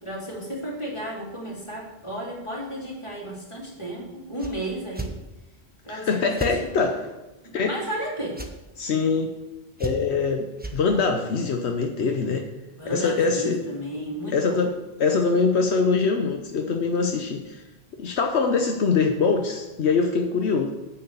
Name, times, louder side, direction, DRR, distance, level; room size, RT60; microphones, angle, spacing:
voice 1, 0.0-5.1 5.8-6.9 7.4-8.5 12.8-14.6, equal, 25° left, -4 dB, 3.0 m, -33 dB
sound 1, 4.4-4.5 4.9-5.1 6.4-6.5 8.3-8.5 9.8-10.2 10.6-10.8, right 2 dB, 10° right, 1.0 m, -32 dB
voice 2, 5.9-7.1 7.5-7.7 8.8-9.3 9.8-10.5 10.7-12.5 12.8-13.6 14.3-14.7 15.0-17.6 17.9-20.7, left 4 dB, 80° left, 4 dB, 1.1 m, -23 dB
9.6 x 6.4 x 6.7 m, 1.1 s
omnidirectional pair, 1.1 m